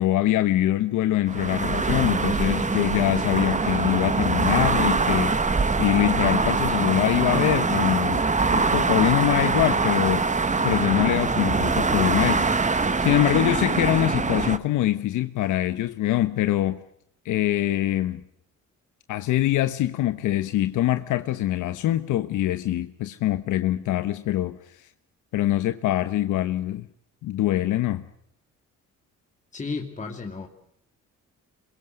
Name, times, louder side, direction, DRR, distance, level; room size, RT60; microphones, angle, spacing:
voice 1, 0.0-8.2 8.5-10.3 10.6-12.5 13.0-16.8 17.2-18.2 19.1-24.6 25.3-26.9 27.2-28.0, left 14 dB, 85° left, 1.1 m, -24 dB
sound 1, 1.3-14.6, right 4 dB, 25° right, 1.5 m, -23 dB
voice 2, 29.5-30.5, left 4 dB, 25° left, 2.8 m, -33 dB
26.0 x 22.5 x 7.9 m
cardioid pair, 90°, 30 cm